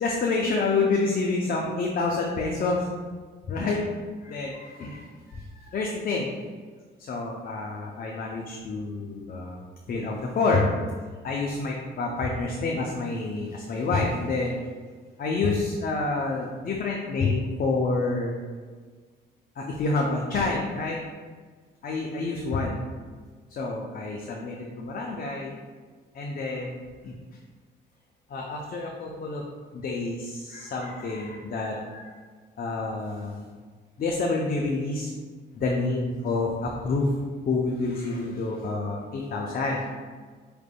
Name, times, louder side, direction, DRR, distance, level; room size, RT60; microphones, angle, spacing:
voice 1, 0.0-2.9 3.5-3.8 4.2-6.3 7.1-9.6 9.9-10.7 11.2-14.6 15.2-18.4 19.6-21.0 21.8-22.8 23.5-25.6 26.1-26.7 27.0-27.1 28.3-29.5 29.7-32.2 32.6-33.5 34.0-35.1 35.5-37.1 37.5-39.9, left 3 dB, 45° left, -1 dB, 0.5 m, -28 dB
4.9 x 3.3 x 2.2 m, 1.5 s
cardioid pair, 90°, 20 cm